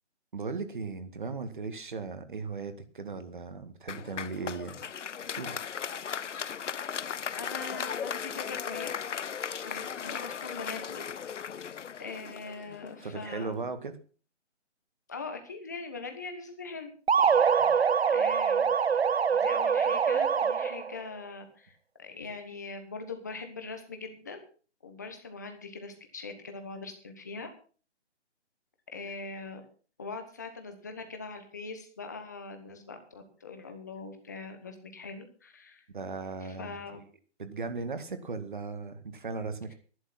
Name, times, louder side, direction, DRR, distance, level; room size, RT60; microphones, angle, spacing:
voice 1, 0.3-4.8 5.2-5.6 13.0-13.9 17.6-17.7 35.9-36.8 37.4-39.7, right 4 dB, 45° right, 9 dB, 2.0 m, -37 dB
Applause, 3.9-13.2, left 7 dB, 80° left, 0.7 m, -37 dB
voice 2, 7.4-8.9 9.6-11.0 12.0-13.7 15.1-16.9 17.2-17.3 18.0-18.8 19.3-24.4 24.8-27.5 28.9-29.6 30.0-35.8 36.4-37.0, left 4 dB, 15° left, 6 dB, 1.2 m, -42 dB
sound 1, 17.1-21.0, right 6 dB, 60° right, 0.6 m, -24 dB
11.5 x 11.5 x 5.9 m, 0.40 s
hypercardioid pair, 175°, 36 cm